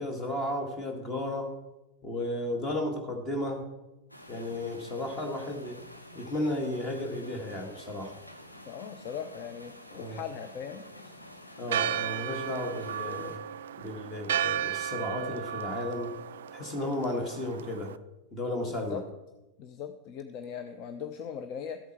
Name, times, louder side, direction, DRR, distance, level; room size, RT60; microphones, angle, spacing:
voice 1, 0.0-1.5 2.0-3.7 4.3-5.8 6.1-8.2 9.9-10.2 11.6-13.4 13.8-16.1 16.5-18.0 18.3-19.0, left 1 dB, 25° left, 3 dB, 1.8 m, -34 dB
sound 1, 4.1-13.4, left 1 dB, 90° left, 1.0 m, -49 dB
voice 2, 8.6-9.7 10.0-10.9 18.7-19.0 19.6-21.8, left 8 dB, 40° left, 8 dB, 0.6 m, -39 dB
Church bell, 11.7-18.0, right 9 dB, 60° right, 0.3 m, -34 dB
13.0 x 8.0 x 4.3 m, 1.0 s
figure-of-eight pair, 90°, 0 cm